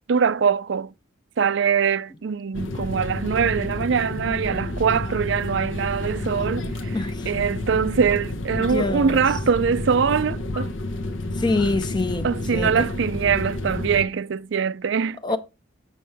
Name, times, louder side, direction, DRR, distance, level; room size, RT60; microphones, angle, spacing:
voice 1, 0.1-0.9 1.4-7.0 7.3-10.7 12.2-15.4, right 6 dB, 60° right, 0.4 m, -23 dB
sound 1, 2.5-14.1, left 2 dB, 70° left, 0.8 m, -30 dB
voice 2, 6.9-7.3 8.6-9.2 11.4-12.9 15.2-15.4, left 2 dB, 20° left, 0.5 m, -25 dB
8.4 x 6.3 x 3.4 m
head